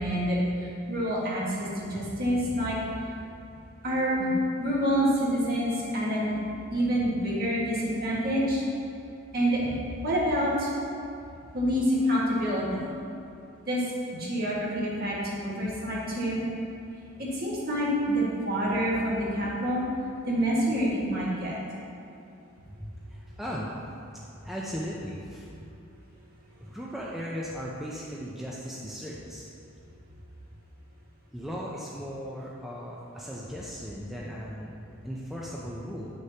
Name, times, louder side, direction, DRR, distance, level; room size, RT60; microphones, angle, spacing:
voice 1, 0.0-2.8 3.8-4.3 4.6-6.3 6.7-8.6 9.3-9.7 10.0-10.7 11.5-12.9 13.6-13.8 14.2-16.4 17.2-19.8 20.3-21.6, equal, 45° right, -6 dB, 1.6 m, -27 dB
voice 2, 22.7-23.9 24.4-25.5 26.6-29.4 31.3-34.7 35.0-36.1, equal, ahead, -5 dB, 0.5 m, -37 dB
8.9 x 6.4 x 2.8 m, 2.6 s
head